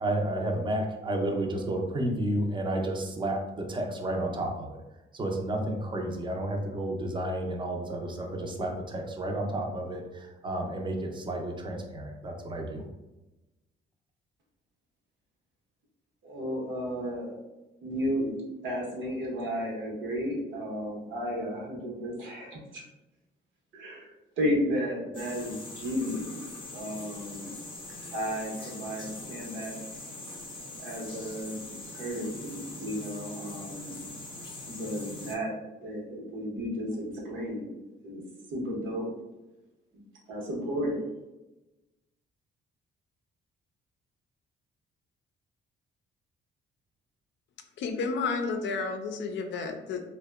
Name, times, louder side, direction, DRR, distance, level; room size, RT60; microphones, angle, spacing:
voice 1, 0.0-4.7 5.1-12.8, right 1 dB, 25° right, 2 dB, 0.5 m, -31 dB
voice 2, 16.2-17.4 17.8-18.3 18.6-22.8 23.7-24.1 24.4-27.5 28.1-29.8 30.8-34.2 34.7-35.5 35.8-37.7 38.0-38.2 38.5-39.1 40.3-41.0, equal, 75° right, -2 dB, 0.8 m, -33 dB
sound 1, 25.1-35.4, left 2 dB, 25° left, 0.7 m, -42 dB
voice 3, 47.8-50.1, left 4 dB, 65° left, 5 dB, 0.4 m, -31 dB
2.7 x 2.1 x 2.2 m, 1.0 s
cardioid pair, 90°, 20 cm